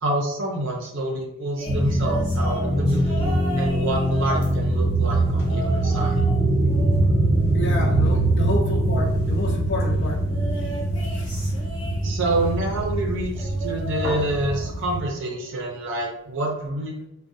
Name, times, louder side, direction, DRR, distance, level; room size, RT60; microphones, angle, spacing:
voice 1, 0.0-6.2 12.0-17.0, right 1 dB, 55° right, 0 dB, 0.6 m, -27 dB
sound 1, 1.5-4.8 5.4-6.4 6.7-8.2 10.3-12.4 13.3-14.8 15.1-15.5 16.6-16.7, equal, 20° left, 1.0 m, -36 dB
sound 2, 1.6-15.0, right 1 dB, 30° right, 1.1 m, -23 dB
voice 2, 7.5-10.3 11.1-11.3, left 2 dB, 50° left, 1 dB, 0.4 m, -29 dB
2.5 x 2.1 x 2.6 m, 0.84 s
head